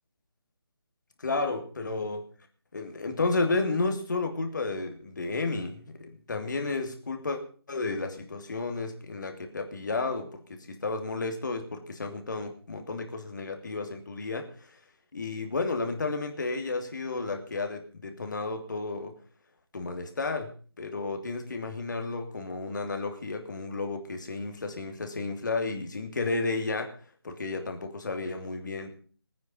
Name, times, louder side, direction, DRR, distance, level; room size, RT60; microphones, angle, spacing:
voice 1, 1.2-2.2 2.7-7.4 7.7-14.7 15.1-19.1 19.7-20.5 20.8-26.9 27.2-29.0, left 3 dB, 50° left, 5 dB, 2.9 m, -32 dB
20.0 x 9.5 x 5.4 m, 0.43 s
figure-of-eight pair, 155°, 13 cm